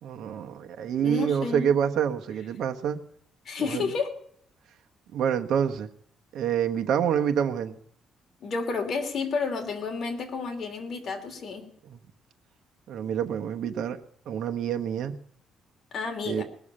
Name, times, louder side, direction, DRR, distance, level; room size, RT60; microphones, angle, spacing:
voice 1, 0.0-3.0 3.6-3.8 5.1-5.9 6.3-7.8 11.9-12.0 12.9-14.0 14.3-15.2 16.3-16.4, right 8 dB, 70° right, 1.1 m, -27 dB
voice 2, 1.0-1.7 3.4-4.1 8.4-11.7 15.9-16.4, left 4 dB, 45° left, 3.1 m, -31 dB
19.5 x 7.1 x 9.9 m
cardioid pair, 125°, 0 cm